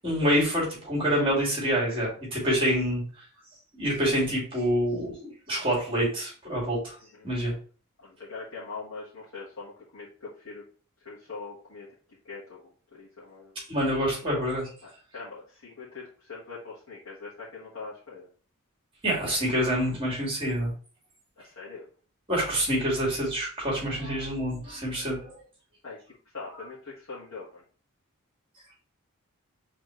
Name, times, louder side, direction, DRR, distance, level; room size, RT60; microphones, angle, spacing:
voice 1, 0.0-3.0 3.8-6.9 7.2-7.5 13.7-14.7 19.0-20.7 22.3-25.4, equal, 25° right, -5 dB, 2.3 m, -27 dB
voice 2, 8.0-10.6 11.0-11.9 12.2-13.6 14.8-18.3 21.4-21.8 25.8-26.0 26.3-27.6, left 4 dB, 65° left, -10 dB, 1.7 m, -42 dB
4.7 x 3.5 x 3.1 m, 0.41 s
head